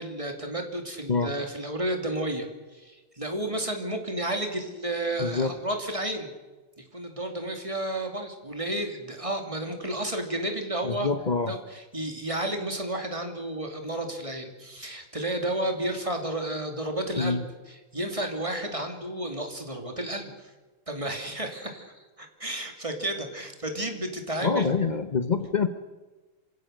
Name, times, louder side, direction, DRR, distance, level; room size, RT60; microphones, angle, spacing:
voice 1, 0.0-6.3 6.8-11.1 11.4-20.5 20.9-24.8, right 1 dB, 15° right, 4 dB, 2.7 m, -32 dB
voice 2, 5.2-5.5 10.8-11.5 17.2-17.4 24.4-25.7, left 5 dB, 90° left, 9 dB, 0.4 m, -25 dB
27.0 x 16.5 x 6.6 m, 1.2 s
omnidirectional pair, 2.3 m